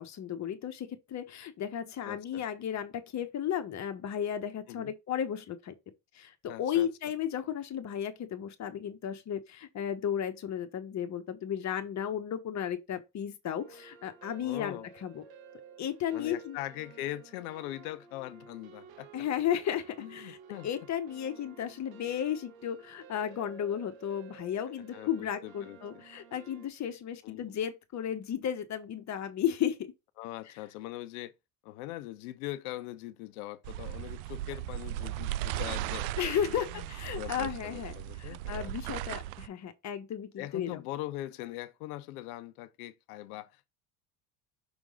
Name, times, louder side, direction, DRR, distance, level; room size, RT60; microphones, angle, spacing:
voice 1, 0.0-5.7 6.1-15.2 15.8-16.6 19.1-20.4 20.6-29.9 36.2-37.9 38.2-40.8, left 9 dB, 40° left, 1.4 m, -34 dB
voice 2, 2.0-2.4 4.7-4.9 6.5-6.9 14.4-14.9 16.1-19.2 20.0-20.7 24.7-26.0 27.2-27.5 30.2-31.3 31.6-36.9 37.1-38.7 40.4-43.7, left 15 dB, 75° left, 0.9 m, -41 dB
sound 1, 13.6-26.7, right 6 dB, 55° right, 1.5 m, -53 dB
sound 2, 33.6-39.5, right 14 dB, 75° right, 0.6 m, -37 dB
6.2 x 3.7 x 4.9 m
supercardioid pair, 100°, 44 cm